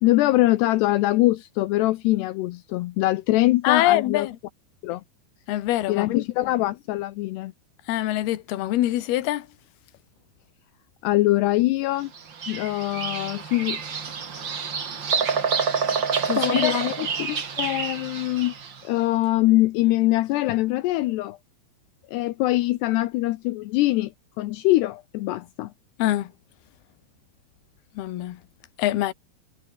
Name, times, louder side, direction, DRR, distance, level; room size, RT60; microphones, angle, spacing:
voice 1, 0.0-4.3 4.8-5.0 5.9-7.5 11.0-12.1 12.5-13.8 16.4-18.5 18.8-21.4 22.1-24.1 24.4-25.7, left 17 dB, 85° left, 2.4 m, -23 dB
voice 2, 3.6-4.4 5.5-6.2 7.9-9.5 16.2-16.8 26.0-26.3 27.9-28.4 28.8-29.1, left 14 dB, 65° left, 2.8 m, -24 dB
Bird vocalization bird call bird song, 12.1-18.8, right 6 dB, 55° right, 1.3 m, -27 dB
omnidirectional pair, 5.8 m